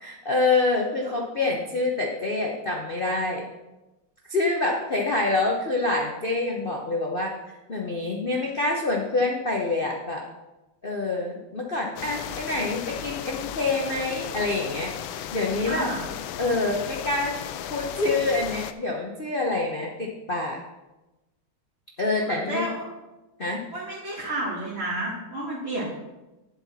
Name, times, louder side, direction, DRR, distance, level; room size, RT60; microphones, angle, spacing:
voice 1, 0.0-3.4 4.3-7.3 7.7-10.2 10.8-15.9 16.4-17.3 17.7-20.6 22.0-22.7 23.4-23.6, left 2 dB, 40° left, -1 dB, 0.8 m, -26 dB
sound 1, 12.0-18.7, left 10 dB, 85° left, 1.4 m, -35 dB
voice 2, 15.6-16.0 22.3-22.8 23.7-25.9, right 1 dB, 30° right, -8 dB, 2.2 m, -31 dB
10.0 x 7.7 x 4.2 m, 1.0 s
omnidirectional pair, 2.2 m